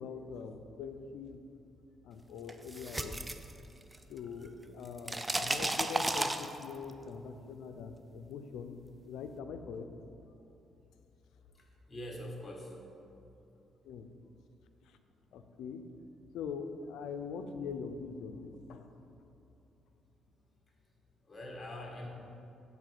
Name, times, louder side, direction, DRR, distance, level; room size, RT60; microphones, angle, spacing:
voice 1, 0.0-1.4 2.0-3.4 4.1-8.8 9.1-9.9 13.8-14.1 15.3-15.9 16.3-19.0, left 5 dB, 80° left, 8 dB, 0.5 m, -43 dB
sound 1, 2.5-4.2 4.5-6.9, right 1 dB, 15° right, 0.4 m, -34 dB
voice 2, 11.6-12.9 21.3-22.1, left 1 dB, 25° left, 0 dB, 1.6 m, -44 dB
7.4 x 4.0 x 6.7 m, 2.8 s
cardioid pair, 90°, 0 cm